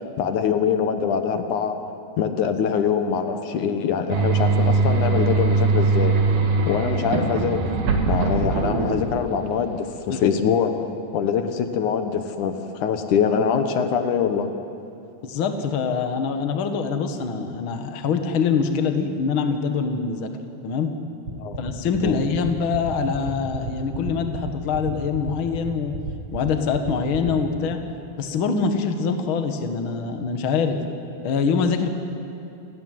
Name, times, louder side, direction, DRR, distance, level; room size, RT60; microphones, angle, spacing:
voice 1, 0.2-1.8 2.2-6.2 6.7-7.6 8.0-10.7 11.1-14.5 21.4-21.6 22.0-22.2, left 7 dB, 75° left, 7 dB, 2.7 m, -23 dB
sound 1, 4.1-9.5, right 4 dB, 85° right, 3.5 m, -21 dB
voice 2, 15.2-20.3 20.6-20.9 21.6-25.9 26.3-27.8 28.2-30.8 31.2-31.9, left 5 dB, 45° left, 6 dB, 2.1 m, -24 dB
sound 2, 21.3-27.3, right 2 dB, 40° right, 2.4 m, -31 dB
29.0 x 19.0 x 9.4 m, 2.7 s
omnidirectional pair, 3.6 m